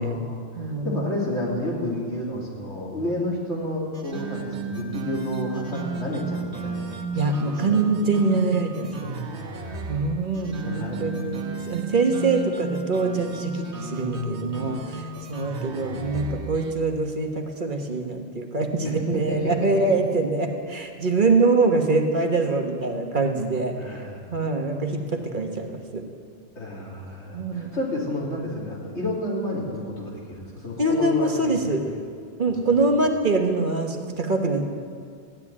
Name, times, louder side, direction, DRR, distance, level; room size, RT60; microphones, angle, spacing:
voice 1, 0.0-7.0 7.5-7.9 9.6-9.8 10.3-11.7 14.0-14.6 15.1-15.6 18.8-20.0 23.7-24.5 24.9-25.1 26.6-31.6 31.9-32.0 32.5-32.6, left 1 dB, 85° left, -4 dB, 3.5 m, -31 dB
voice 2, 0.5-1.0 7.1-9.2 9.9-11.4 11.7-24.1 24.3-26.0 27.3-27.8 30.8-31.8 32.4-34.7, right 3 dB, 45° right, 4 dB, 1.5 m, -24 dB
sound 1, 3.9-16.8, right 4 dB, 80° right, 1.4 m, -33 dB
14.5 x 9.8 x 9.7 m, 2.2 s
omnidirectional pair, 1.1 m